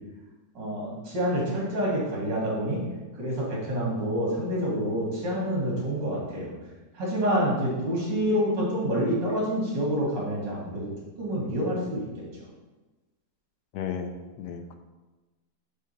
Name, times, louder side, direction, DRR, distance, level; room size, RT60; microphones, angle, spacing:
voice 1, 0.6-2.8 3.2-6.5 6.9-10.9 11.2-12.1, equal, 90° right, -4 dB, 2.4 m, -27 dB
voice 2, 13.7-14.7, left 7 dB, 75° left, 6 dB, 1.1 m, -34 dB
7.4 x 3.5 x 4.2 m, 1.2 s
omnidirectional pair, 1.9 m